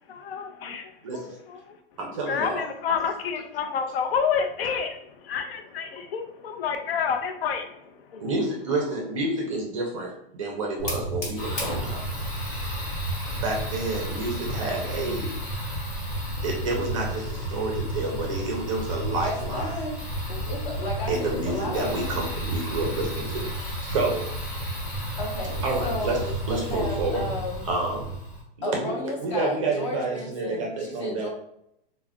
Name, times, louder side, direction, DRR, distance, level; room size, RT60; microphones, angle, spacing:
voice 1, 0.1-0.8 2.3-7.7 8.1-8.2, left 6 dB, 80° left, 6 dB, 0.5 m, -28 dB
voice 2, 2.0-2.7 8.2-12.0 13.4-15.3 16.4-19.6 21.1-24.3 25.6-26.2 26.5-27.2 27.7-28.1 28.6-31.3, right 2 dB, 35° right, 0 dB, 0.4 m, -29 dB
Fire, 10.8-28.4, right 1 dB, 65° left, 1.2 m, -32 dB
voice 3, 19.1-20.0 20.3-22.2 25.2-27.7 28.6-31.3, left 2 dB, 30° left, -1 dB, 0.6 m, -33 dB
2.4 x 2.1 x 3.4 m, 0.78 s
supercardioid pair, 170°, 29 cm